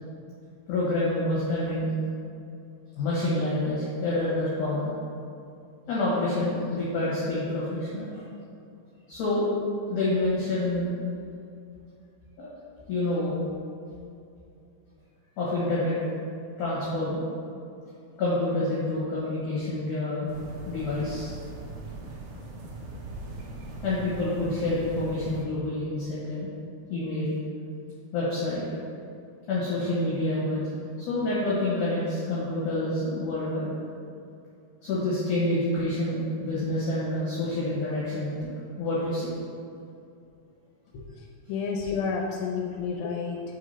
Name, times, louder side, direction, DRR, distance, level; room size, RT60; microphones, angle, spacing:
voice 1, 0.7-1.9 3.0-4.9 5.9-8.2 9.1-9.5 9.9-10.9 12.4-12.5 12.9-13.4 15.4-16.0 16.6-17.2 18.2-20.3 20.7-21.3 23.8-26.5 26.9-27.3 28.1-28.6 29.5-30.6 31.0-33.7 34.8-39.3, left 2 dB, 60° left, -8 dB, 2.3 m, -27 dB
sound 1, 20.3-25.4, right 2 dB, 70° right, 2.2 m, -40 dB
voice 2, 41.2-43.4, left 5 dB, 85° left, 1 dB, 2.7 m, -30 dB
5.7 x 4.8 x 5.5 m, 2.5 s
omnidirectional pair, 4.9 m